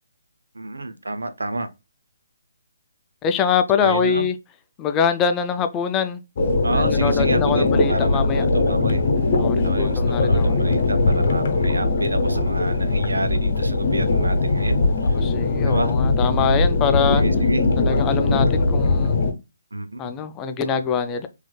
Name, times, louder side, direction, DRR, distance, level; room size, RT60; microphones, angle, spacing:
voice 1, 0.5-1.7 3.8-4.3 6.6-9.0 9.6-15.2 15.6-15.9 17.1-17.6 19.7-20.1, right 2 dB, 90° right, 0.6 m, -29 dB
voice 2, 3.2-4.4 4.8-6.2 6.7-8.5 9.4-10.7 15.1-17.2 17.8-19.2 20.0-21.3, left 6 dB, 15° left, 0.4 m, -24 dB
sound 1, 6.4-19.3, left 3 dB, 50° left, 0.8 m, -20 dB
3.2 x 3.1 x 2.3 m
hypercardioid pair, 150°, 0 cm